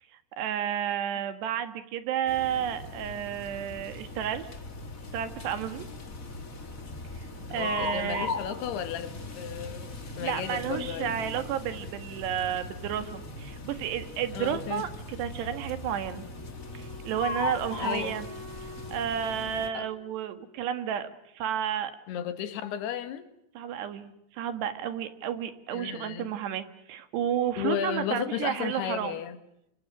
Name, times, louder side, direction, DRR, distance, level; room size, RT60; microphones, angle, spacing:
voice 1, 0.4-4.5 5.1-5.9 7.5-8.3 10.2-16.3 16.7-18.3 18.9-21.1 21.4-21.9 23.6-29.2, right 9 dB, 85° right, 3.9 m, -31 dB
sound 1, 2.3-19.7, left 3 dB, 30° left, 1.8 m, -39 dB
voice 2, 7.5-9.9 10.2-11.2 14.3-14.8 17.8-18.2 19.7-19.9 22.1-23.3 25.7-26.3 27.6-29.4, left 9 dB, 75° left, 3.6 m, -34 dB
Wind instrument woodwind instrument, 15.9-21.0, left 2 dB, 70° right, 4.9 m, -48 dB
27.0 x 25.5 x 6.1 m
omnidirectional pair, 4.7 m